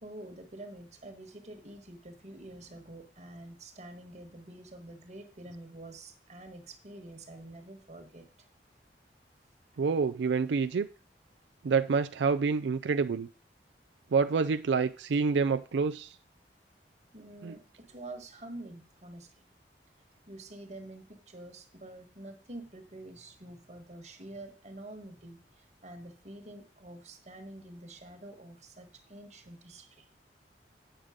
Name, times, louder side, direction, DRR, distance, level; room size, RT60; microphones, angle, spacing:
voice 1, 0.0-8.5 17.1-19.3 20.3-30.0, right 1 dB, 40° right, 1.5 m, -47 dB
voice 2, 9.8-10.9 11.6-13.3 14.1-16.1 17.4-17.6, right 5 dB, 90° right, 0.4 m, -27 dB
8.9 x 6.5 x 5.0 m
head